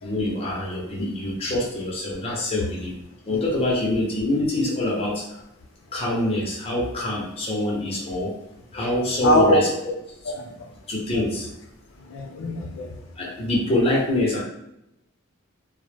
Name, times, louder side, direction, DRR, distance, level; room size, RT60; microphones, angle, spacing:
voice 1, 0.0-2.9 3.3-5.3 5.9-8.3 8.7-10.0 10.9-11.5 13.2-14.4, left 1 dB, 30° left, -3 dB, 0.6 m, -25 dB
voice 2, 9.2-9.6 10.3-10.7 12.1-12.9, left 1 dB, 75° left, 2 dB, 0.5 m, -22 dB
2.0 x 2.0 x 3.2 m, 0.85 s
head